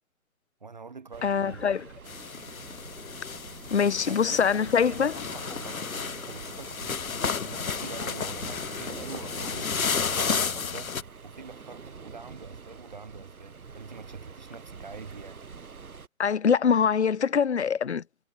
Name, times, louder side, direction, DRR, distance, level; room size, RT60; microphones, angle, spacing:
voice 1, 0.6-1.8 3.8-10.9 11.2-15.4, right 4 dB, 30° right, 1.3 m, -45 dB
sound 1, 1.1-16.1, right 5 dB, 80° right, 2.2 m, -46 dB
voice 2, 1.2-1.9 3.7-5.1 16.2-18.0, left 6 dB, 50° left, 0.7 m, -23 dB
sound 2, 2.1-11.0, left 6 dB, 75° left, 1.5 m, -32 dB
hypercardioid pair, 175°, 43 cm